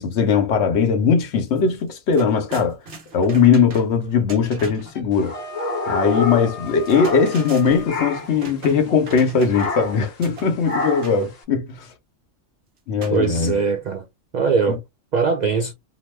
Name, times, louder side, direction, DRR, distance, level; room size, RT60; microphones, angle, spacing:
voice 1, 0.0-2.8 3.1-5.3 5.9-11.9 12.9-13.5 14.7-14.8, left 6 dB, 65° left, 0.9 m, -19 dB
sound 1, 1.5-1.6 1.9-5.0 6.7-9.9 10.2-11.2 13.0-13.9, right 2 dB, 55° right, 1.1 m, -40 dB
Wind instrument woodwind instrument, 4.9-8.0, left 3 dB, 40° left, 0.7 m, -38 dB
sound 2, 5.1-7.6 7.9-8.4 9.5-10.1 10.6-11.2, left 2 dB, 80° left, 1.2 m, -27 dB
voice 2, 13.1-14.0 14.3-14.8 15.1-15.7, right 5 dB, 90° right, 0.3 m, -21 dB
2.9 x 2.0 x 3.1 m
omnidirectional pair, 1.3 m